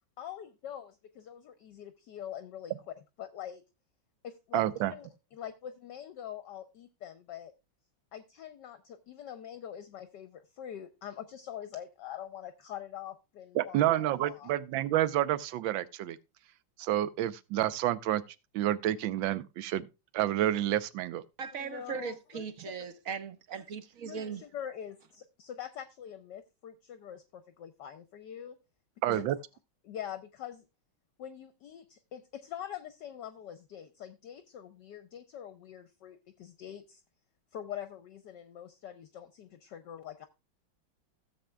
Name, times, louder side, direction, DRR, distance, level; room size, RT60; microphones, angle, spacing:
voice 1, 0.2-3.6 4.2-7.5 8.1-14.5 21.5-22.9 24.1-28.6 29.1-29.3 29.8-30.6 31.2-37.0 37.5-40.3, left 10 dB, 70° left, 1.2 m, -44 dB
voice 2, 4.5-4.9 13.5-16.2 16.8-18.2 18.5-19.8 20.1-21.2 29.0-29.4, right 13 dB, 75° right, 1.4 m, -29 dB
voice 3, 21.4-24.4, right 6 dB, 55° right, 1.1 m, -39 dB
16.0 x 7.5 x 2.2 m
omnidirectional pair, 2.2 m